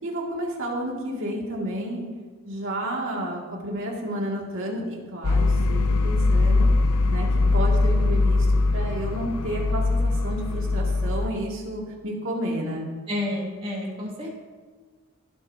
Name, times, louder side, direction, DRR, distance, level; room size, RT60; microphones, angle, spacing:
voice 1, 0.0-2.0 2.4-6.7 7.1-7.3 7.5-12.9, right 1 dB, 65° right, -2 dB, 2.4 m, -31 dB
sound 1, 5.2-11.3, left 3 dB, 85° left, 0.6 m, -21 dB
voice 2, 13.1-14.4, left 1 dB, 25° right, -2 dB, 2.3 m, -30 dB
17.0 x 8.3 x 2.8 m, 1.4 s
head